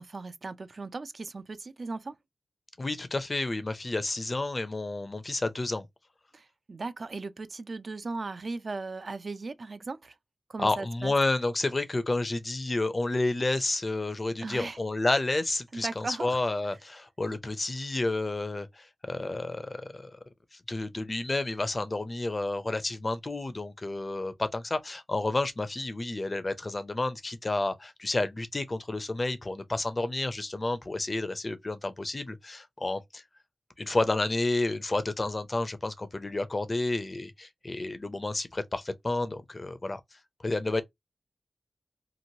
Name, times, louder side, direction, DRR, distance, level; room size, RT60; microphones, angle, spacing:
voice 1, 0.0-2.2 6.3-10.2 10.5-11.1 14.4-14.8 15.7-16.4, right 3 dB, 55° right, 0.3 m, -37 dB
voice 2, 2.8-5.9 10.6-20.2 20.7-33.2 33.8-40.0 40.4-40.8, left 2 dB, 35° left, 0.5 m, -30 dB
3.0 x 2.5 x 2.7 m
wide cardioid pair, 95°, 0 cm